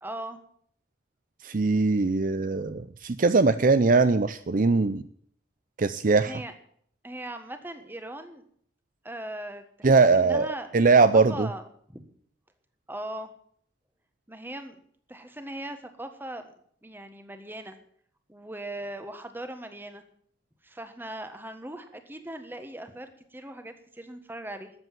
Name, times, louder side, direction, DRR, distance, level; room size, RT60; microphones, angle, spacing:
voice 1, 0.0-0.4 6.2-6.5 7.0-8.4 9.0-10.7 11.1-12.1 12.9-13.3 14.3-14.8 15.1-16.5 16.8-17.7 18.3-20.0 20.6-24.7, right 1 dB, 10° right, 8 dB, 1.5 m, -39 dB
voice 2, 1.4-5.0 5.8-6.3 9.8-10.5 10.7-11.5, right 4 dB, 45° right, 12 dB, 0.5 m, -21 dB
13.5 x 8.2 x 9.2 m, 0.62 s
head